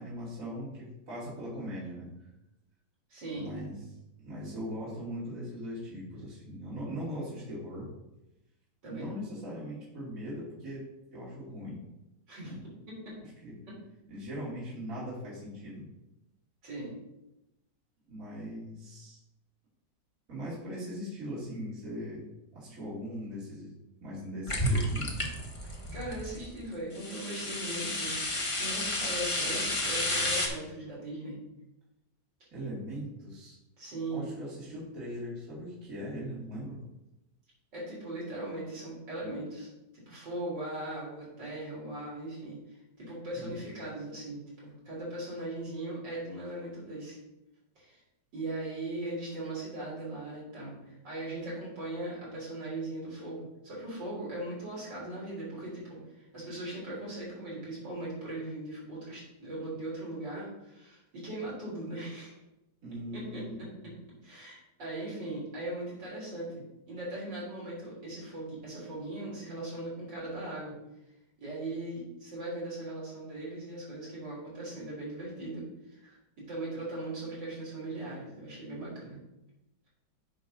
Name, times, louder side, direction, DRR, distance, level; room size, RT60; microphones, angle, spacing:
voice 1, 0.0-2.1 3.3-3.7 4.2-7.9 8.8-10.8 11.1-11.8 12.4-12.6 13.2-13.5 14.1-15.8 18.1-19.2 20.3-23.7 24.0-25.1 32.5-33.6 34.1-36.8 43.3-43.5 62.8-63.6, equal, 45° right, -9 dB, 3.1 m, -40 dB
voice 2, 3.1-3.5 8.8-9.1 12.3-12.5 13.1-13.2 13.7-13.8 16.6-16.9 25.9-31.4 33.8-34.3 37.7-39.7 39.9-42.6 43.0-47.2 47.8-48.0 48.3-62.4 63.1-63.9 64.2-70.8 71.4-79.2, right 1 dB, 75° right, -7 dB, 4.1 m, -39 dB
sound 1, 24.5-26.5 27.0-30.5, left 1 dB, 20° left, 0.9 m, -31 dB
8.5 x 6.1 x 3.9 m, 0.92 s
omnidirectional pair, 1.9 m